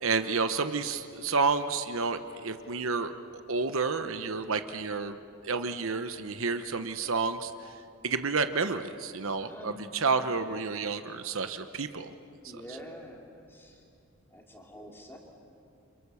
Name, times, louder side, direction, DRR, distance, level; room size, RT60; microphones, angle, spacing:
voice 1, 0.0-3.1 3.5-5.2 5.4-7.7 8.0-12.1, right 4 dB, 65° right, 9 dB, 1.0 m, -30 dB
voice 2, 9.4-9.8 12.4-13.8 14.3-15.2, equal, 10° left, 0 dB, 3.2 m, -46 dB
29.5 x 26.5 x 7.1 m, 2.5 s
head